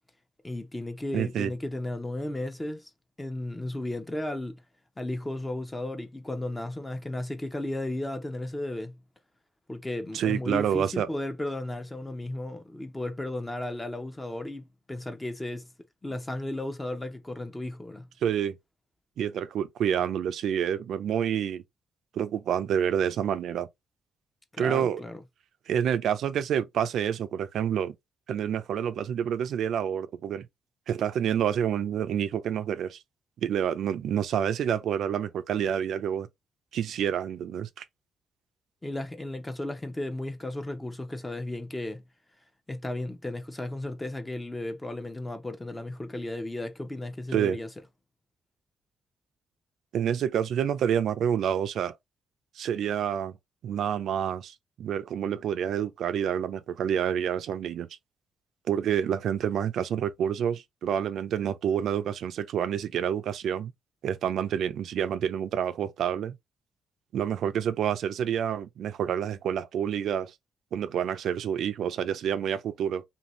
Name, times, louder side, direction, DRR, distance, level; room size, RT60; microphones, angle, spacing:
voice 1, 0.4-2.9 3.2-4.6 5.0-9.0 9.7-15.7 16.0-18.1 24.5-25.2 38.8-42.0 42.7-47.7, left 1 dB, 15° left, 0.6 m, -34 dB
voice 2, 1.1-1.5 10.1-11.1 18.2-18.6 19.2-21.6 22.1-23.7 24.6-25.0 25.7-27.9 28.3-30.5 30.9-33.0 33.4-36.3 36.7-37.8 47.3-47.6 49.9-52.0 52.6-53.4 53.6-57.9 58.7-63.7 64.0-66.4 67.1-70.3 70.7-73.0, right 9 dB, 75° right, 0.4 m, -28 dB
2.7 x 2.6 x 3.0 m
cardioid pair, 115°, 0 cm